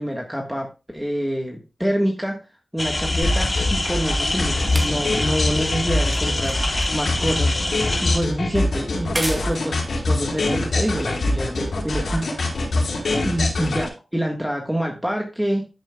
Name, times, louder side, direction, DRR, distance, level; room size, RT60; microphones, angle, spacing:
voice 1, 0.0-2.4 2.7-12.4 13.2-15.7, equal, 5° right, 1 dB, 1.5 m, -26 dB
sound 1, 2.8-8.2, left 2 dB, 30° left, 3.3 m, -25 dB
sound 2, 3.2-13.9, left 2 dB, 85° left, 4.6 m, -24 dB
sound 3, 3.8-11.4 12.3-12.4, right 1 dB, 30° right, 2.1 m, -37 dB
14.0 x 7.4 x 2.3 m, 0.29 s
wide cardioid pair, 85°, 0 cm